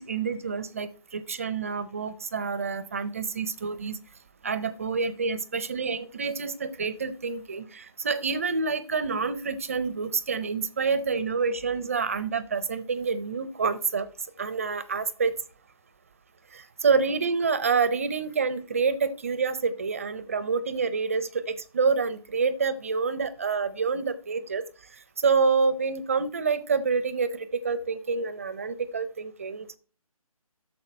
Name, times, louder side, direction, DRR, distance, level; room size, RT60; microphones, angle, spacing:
voice 1, 0.0-4.0 4.4-14.1 14.4-15.3 16.5-24.6 25.2-29.8, right 5 dB, 25° right, 16 dB, 0.5 m, -27 dB
13.0 x 6.7 x 4.3 m, 0.39 s
figure-of-eight pair, 160°, 19 cm